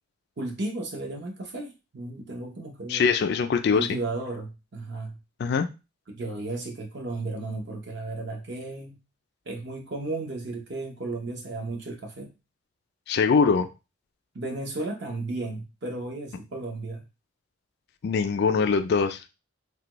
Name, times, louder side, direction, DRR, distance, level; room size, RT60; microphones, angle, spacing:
voice 1, 0.4-3.1 3.7-5.2 6.1-9.0 9.5-12.3 14.3-17.1, right 2 dB, 55° right, 3 dB, 0.7 m, -34 dB
voice 2, 2.9-4.0 5.4-5.7 13.1-13.7 18.0-19.2, left 5 dB, 50° left, 8 dB, 0.3 m, -22 dB
3.3 x 2.2 x 2.9 m, 0.28 s
head